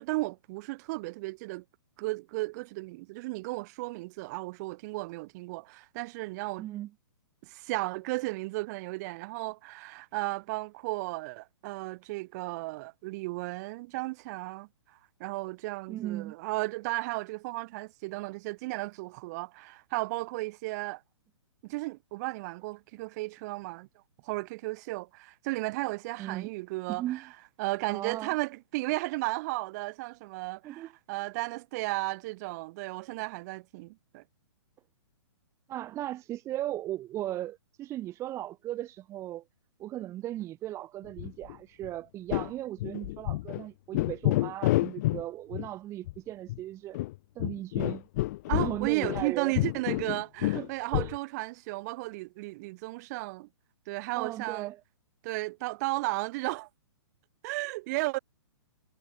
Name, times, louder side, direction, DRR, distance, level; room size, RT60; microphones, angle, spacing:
voice 1, 0.0-1.6 2.0-6.7 7.4-14.7 15.2-21.0 21.7-23.9 24.2-27.0 27.6-34.2 48.5-53.5 53.9-54.7 55.2-56.7 57.4-58.2, right 22 dB, 35° right, 0.9 m, -34 dB
voice 2, 6.6-6.9 15.9-16.3 26.2-26.5 26.9-27.3 27.9-28.4 30.6-30.9 35.7-39.4 39.8-47.0 47.4-48.0 48.5-49.6 50.4-51.2 54.2-54.8, right 14 dB, 20° right, 0.5 m, -37 dB
sound 1, 41.2-41.6 41.8-41.9 42.3-42.5 42.8-43.6 43.9-45.2 45.5-45.7 46.1-46.2 46.5-46.6 46.9-49.3 49.6-51.2, left 17 dB, 40° left, 0.4 m, -29 dB
figure-of-eight pair, 125°, 15 cm